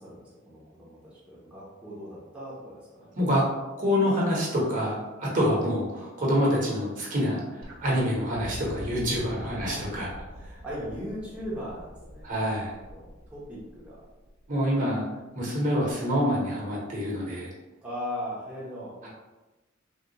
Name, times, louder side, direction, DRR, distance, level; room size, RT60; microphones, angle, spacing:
voice 1, 0.0-3.2 9.2-12.4 12.9-14.0 17.8-19.1, equal, 5° right, -9 dB, 0.7 m, -39 dB
voice 2, 3.8-7.4 7.8-10.1 12.2-12.7 14.5-15.0 15.3-17.5 19.0-19.1, equal, 40° right, -5 dB, 0.9 m, -26 dB
sound 1, 7.6-14.8 15.9-16.0, equal, 75° right, 0.8 m, -45 dB
3.5 x 2.3 x 2.8 m, 1.1 s
head